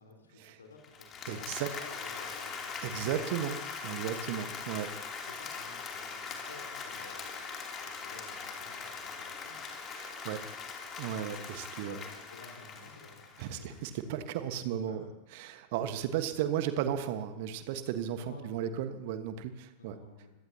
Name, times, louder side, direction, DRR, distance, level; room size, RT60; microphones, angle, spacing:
voice 1, 0.0-2.7 5.2-9.7 11.8-13.3 13.6-13.7 14.9-15.2 18.2-18.7 19.8-20.3, left 3 dB, 70° left, 2 dB, 4.0 m, -53 dB
Applause, 0.8-13.9, left 5 dB, 30° left, 3.0 m, -41 dB
voice 2, 1.2-1.7 2.8-5.0 9.9-10.5 11.0-12.0 13.4-15.0 15.3-19.9, right 10 dB, 50° right, 9 dB, 1.4 m, -35 dB
25.0 x 17.5 x 2.9 m, 0.99 s
figure-of-eight pair, 90°, 0 cm